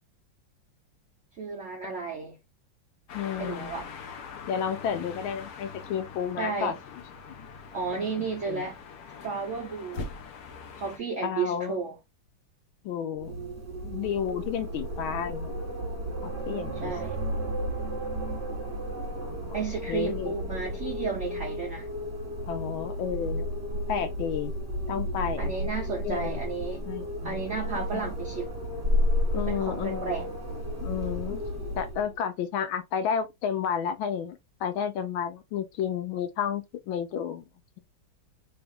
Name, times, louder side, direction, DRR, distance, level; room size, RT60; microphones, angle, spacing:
voice 1, 1.4-2.4 3.4-3.9 6.4-6.8 7.7-8.8 9.2-10.1 10.7-12.0 16.8-17.2 19.5-21.9 25.4-26.9 27.2-28.6 29.3-30.3, right 5 dB, 75° right, 0.6 m, -33 dB
voice 2, 3.1-3.8 4.5-6.8 7.3-7.5 8.1-8.7 11.2-11.8 12.8-13.3 13.8-15.5 16.2-16.9 19.0-19.5 19.9-20.3 22.5-23.5 23.9-24.5 24.9-25.5 26.0-26.4 26.9-27.4 27.8-28.0 29.3-30.1 30.8-31.4 31.8-37.4, left 8 dB, 85° left, 1.5 m, -32 dB
sound 1, 3.1-11.0, left 5 dB, 65° left, 1.0 m, -42 dB
Wind, 13.2-32.2, equal, 35° right, 1.6 m, -32 dB
3.5 x 2.3 x 3.5 m
omnidirectional pair, 2.2 m